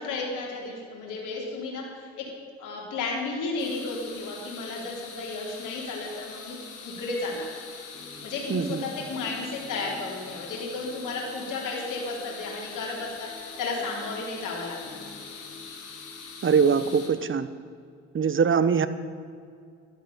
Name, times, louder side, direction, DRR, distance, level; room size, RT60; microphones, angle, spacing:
voice 1, 0.0-2.2 2.6-6.6 6.8-7.5 8.2-15.0, left 3 dB, 65° left, -2 dB, 3.7 m, -33 dB
sound 1, 3.6-17.1, left 5 dB, 85° left, 2.1 m, -43 dB
sound 2, 7.9-17.0, left 3 dB, 20° left, 3.2 m, -48 dB
voice 2, 8.5-8.8 16.4-17.5 18.1-18.9, right 6 dB, 35° right, 13 dB, 1.0 m, -22 dB
12.0 x 11.5 x 7.1 m, 2.3 s
hypercardioid pair, 50°, 33 cm